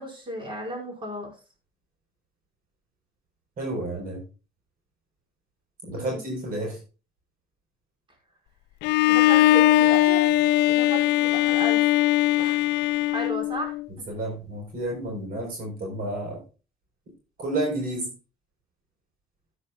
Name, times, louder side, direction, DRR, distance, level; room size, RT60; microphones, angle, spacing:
voice 1, 0.0-1.4 6.0-6.2 9.1-10.3 10.7-12.0 12.4-12.8 13.1-13.8, equal, 30° right, 2 dB, 5.5 m, -34 dB
voice 2, 3.6-4.2 5.8-6.8 14.1-16.4 17.4-18.1, right 1 dB, 60° right, 1 dB, 4.3 m, -30 dB
Bowed string instrument, 8.8-13.8, left 15 dB, 80° left, 0.4 m, -20 dB
14.0 x 9.6 x 2.4 m, 0.32 s
cardioid pair, 110°, 17 cm